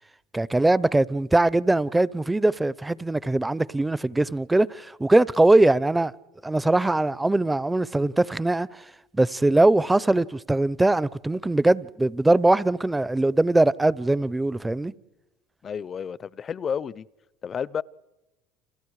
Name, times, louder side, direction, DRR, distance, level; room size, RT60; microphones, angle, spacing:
voice 1, 0.3-6.1 6.4-8.7 9.1-14.9, right 2 dB, 10° right, 0.8 m, -21 dB
voice 2, 15.6-17.1 17.4-17.8, left 7 dB, 40° left, 0.7 m, -31 dB
30.0 x 27.5 x 4.9 m
hypercardioid pair, 75°, 0 cm